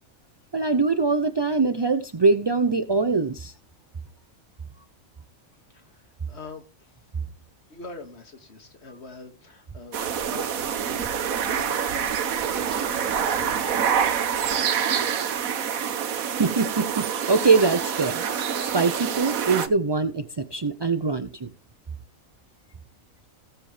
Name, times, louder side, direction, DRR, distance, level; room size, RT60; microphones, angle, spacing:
voice 1, 0.5-3.5 16.4-18.2 18.7-21.5, right 4 dB, 35° right, 0.4 m, -23 dB
voice 2, 6.3-6.9 7.7-15.4, left 3 dB, 50° left, 2.2 m, -44 dB
sound 1, 9.9-19.7, right 8 dB, 80° right, 1.4 m, -26 dB
17.5 x 7.3 x 3.3 m
omnidirectional pair, 1.4 m